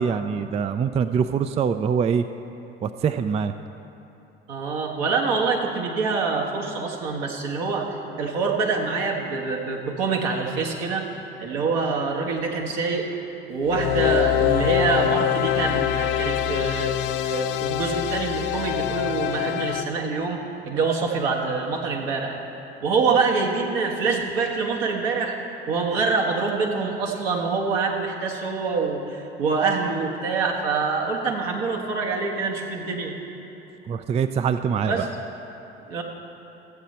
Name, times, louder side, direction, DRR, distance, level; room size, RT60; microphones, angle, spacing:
voice 1, 0.0-2.2 2.8-3.5 33.9-35.1, right 6 dB, 20° right, 10 dB, 0.3 m, -24 dB
voice 2, 4.5-11.1 11.4-13.1 13.5-16.9 17.2-20.4 20.6-22.4 22.8-25.4 25.7-33.1 34.9-35.1 35.9-36.0, right 4 dB, 65° right, -1 dB, 1.6 m, -25 dB
sound 1, 13.6-19.8, left 12 dB, 70° left, 0.5 m, -24 dB
14.5 x 8.1 x 4.3 m, 2.9 s
hypercardioid pair, 60°, 30 cm